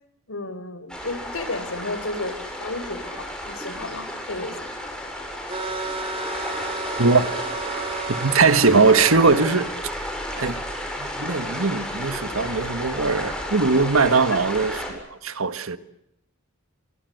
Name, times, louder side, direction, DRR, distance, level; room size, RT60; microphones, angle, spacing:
voice 1, 0.3-4.8 10.3-10.5 14.1-14.4, left 2 dB, 75° left, 4.5 m, -33 dB
sound 1, 0.9-14.9, equal, 5° left, 7.8 m, -32 dB
sound 2, 5.5-9.6, right 4 dB, 25° right, 2.6 m, -32 dB
voice 2, 7.0-7.3 8.1-9.7 10.4-10.6 11.0-15.8, right 4 dB, 75° right, 1.7 m, -20 dB
26.0 x 24.0 x 8.0 m
head